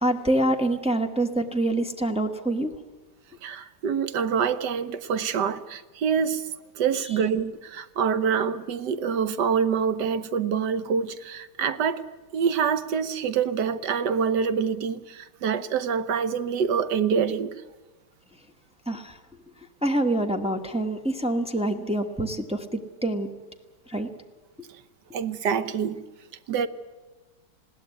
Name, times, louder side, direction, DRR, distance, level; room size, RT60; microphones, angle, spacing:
voice 1, 0.0-2.7 18.9-19.2 19.8-23.3 23.9-24.1 24.6-24.7, right 1 dB, 5° right, 1.1 m, -26 dB
voice 2, 3.4-6.5 6.7-12.0 12.3-17.6 25.1-26.0 26.5-26.7, right 6 dB, 75° right, 1.5 m, -26 dB
20.5 x 16.0 x 9.5 m
omnidirectional pair, 1.8 m